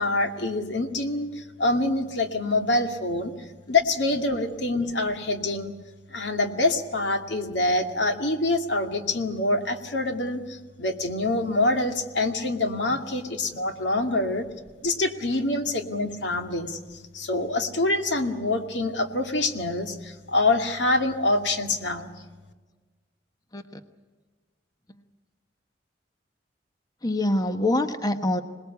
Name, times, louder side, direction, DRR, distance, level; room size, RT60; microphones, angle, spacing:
voice 1, 0.0-3.3 3.7-5.7 6.1-14.5 14.8-16.8 17.1-22.1, left 2 dB, 85° left, 5 dB, 2.3 m, -25 dB
voice 2, 27.0-28.4, left 1 dB, 20° left, 8 dB, 1.1 m, -25 dB
26.5 x 20.0 x 8.4 m, 1.3 s
head